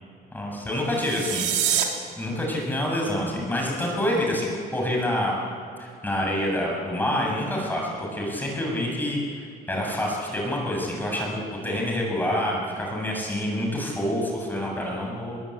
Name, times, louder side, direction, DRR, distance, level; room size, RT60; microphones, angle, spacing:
voice 1, 0.3-1.9 2.2-5.3 5.8-15.4, left 1 dB, 10° left, -2 dB, 7.5 m, -27 dB
sound 1, 0.9-1.8, right 10 dB, 90° right, 3.5 m, -25 dB
22.0 x 21.0 x 8.9 m, 2.4 s
cardioid pair, 110°, 17 cm